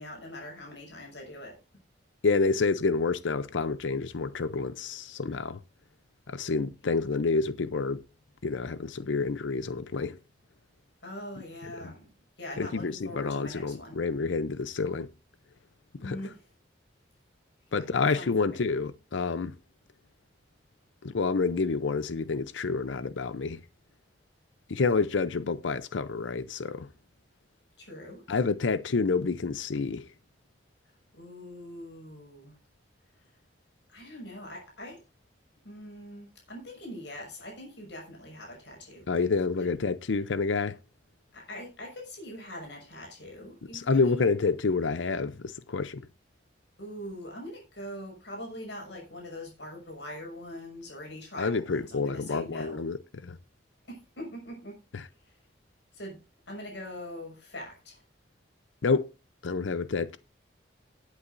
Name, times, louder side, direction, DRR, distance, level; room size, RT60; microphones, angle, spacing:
voice 1, 0.0-1.6 11.0-12.1 12.4-14.0 16.0-16.4 17.7-18.6 27.8-28.2 31.1-32.6 33.9-35.0 35.6-39.3 39.6-39.7 41.3-44.4 46.8-52.8 53.9-54.8 55.2-55.3 55.9-58.0, left 1 dB, 70° left, 5.9 m, -43 dB
voice 2, 2.2-5.6 6.3-8.0 8.4-10.2 11.8-11.9 12.6-15.1 16.0-16.2 17.7-19.5 21.0-23.6 24.7-26.9 28.3-30.1 39.1-40.8 43.7-46.0 51.4-53.4 54.9-55.1 58.8-59.1 59.4-60.2, left 4 dB, 90° left, 0.6 m, -28 dB
19.0 x 8.4 x 2.6 m
head